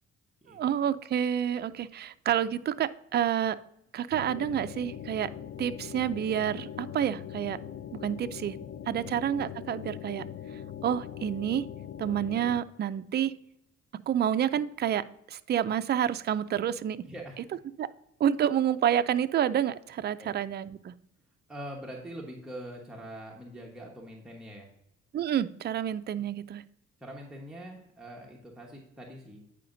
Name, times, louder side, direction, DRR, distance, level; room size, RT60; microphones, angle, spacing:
voice 1, 0.5-3.6 3.9-5.3 5.6-7.6 7.9-8.6 8.9-10.3 10.8-11.7 12.0-13.3 13.9-17.1 17.8-17.9 18.2-20.9 25.1-26.6, right 9 dB, 35° right, 12 dB, 0.4 m, -29 dB
sound 1, 4.1-12.6, left 9 dB, 40° left, 0.4 m, -41 dB
voice 2, 17.0-17.4 20.2-20.3 21.5-24.7 26.1-26.2 27.0-29.4, right 1 dB, ahead, -2 dB, 1.1 m, -43 dB
9.1 x 4.9 x 2.6 m, 0.82 s
cardioid pair, 90°, 30 cm